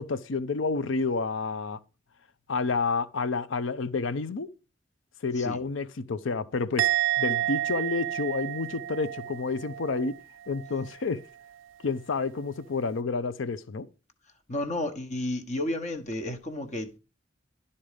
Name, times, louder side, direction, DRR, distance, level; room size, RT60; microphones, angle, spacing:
voice 1, 0.0-1.8 2.5-4.5 5.2-6.9 7.2-10.2 10.5-11.2 11.8-13.9, left 4 dB, 80° left, 0.6 m, -29 dB
Musical instrument, 6.8-10.2 10.4-10.9, right 13 dB, 90° right, 0.4 m, -30 dB
voice 2, 14.5-17.0, left 1 dB, 40° left, 1.1 m, -32 dB
11.5 x 4.3 x 4.9 m
head